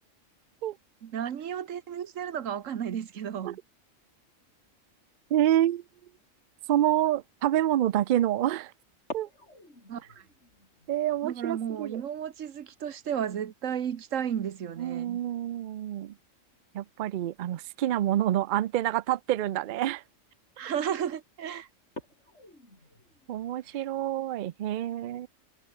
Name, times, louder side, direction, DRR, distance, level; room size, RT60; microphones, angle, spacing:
voice 1, 1.0-3.6 9.9-10.2 11.2-15.2 20.6-21.7 23.7-23.8, right 9 dB, 70° right, 1.4 m, -33 dB
voice 2, 5.3-5.8 6.7-8.7 9.1-9.3 10.9-12.0 14.8-16.1 16.7-20.0 23.3-25.3, right 12 dB, 90° right, 0.4 m, -27 dB
sound 1, 7.5-7.8 8.9-15.4 15.7-15.8 16.1-16.5 17.5-17.7 18.3-18.4 18.9-19.0 19.4-19.7 20.4-20.7 21.1-21.2 21.8-24.1, left 1 dB, 55° left, 8.2 m, -50 dB
omnidirectional pair, 1.4 m